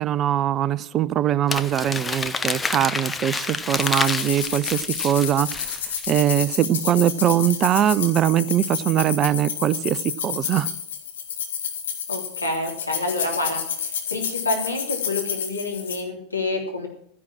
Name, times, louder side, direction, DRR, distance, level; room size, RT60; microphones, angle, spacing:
voice 1, 0.0-5.8 6.1-10.7, right 11 dB, 30° right, 0.6 m, -22 dB
Crumpling crinkling, 1.5-6.1, left 4 dB, 10° left, 0.8 m, -28 dB
sound 1, 3.8-16.0, left 8 dB, 60° left, 2.1 m, -30 dB
voice 2, 12.1-16.9, left 2 dB, 85° left, 3.4 m, -28 dB
13.5 x 10.5 x 7.4 m
figure-of-eight pair, 90°, 0 cm